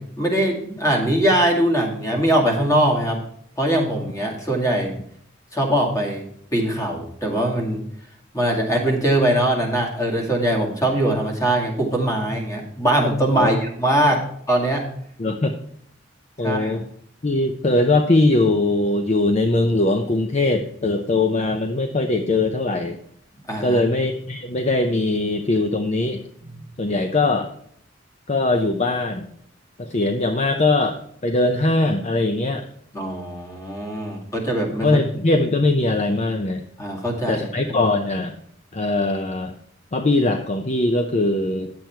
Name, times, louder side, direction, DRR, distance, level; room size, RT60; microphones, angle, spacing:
voice 1, 0.0-3.2 3.6-5.0 5.5-6.2 6.5-7.8 8.3-14.8 16.4-16.7 23.5-23.8 32.9-35.0 36.8-37.5, right 1 dB, 20° left, 0 dB, 2.2 m, -21 dB
voice 2, 15.2-15.5 16.4-16.8 17.2-23.0 23.6-26.2 26.8-27.5 28.3-29.3 29.8-32.7 34.8-36.6 37.3-38.3 38.7-39.5 39.9-41.7, left 2 dB, 40° left, 6 dB, 0.7 m, -21 dB
10.5 x 7.9 x 4.5 m, 0.68 s
head